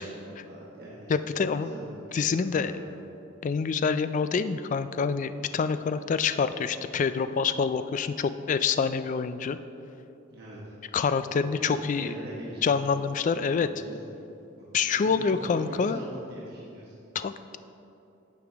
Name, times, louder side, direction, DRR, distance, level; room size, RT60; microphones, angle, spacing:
voice 1, 0.0-2.8 10.3-10.7 11.3-12.9 13.4-14.1 14.6-17.0, right 1 dB, 55° right, -7 dB, 1.4 m, -42 dB
voice 2, 1.1-1.7 2.1-2.7 3.4-9.6 10.9-12.1 12.6-13.7 14.7-16.0 17.1-17.6, left 5 dB, 40° left, 12 dB, 0.3 m, -26 dB
11.0 x 7.0 x 3.5 m, 2.8 s
head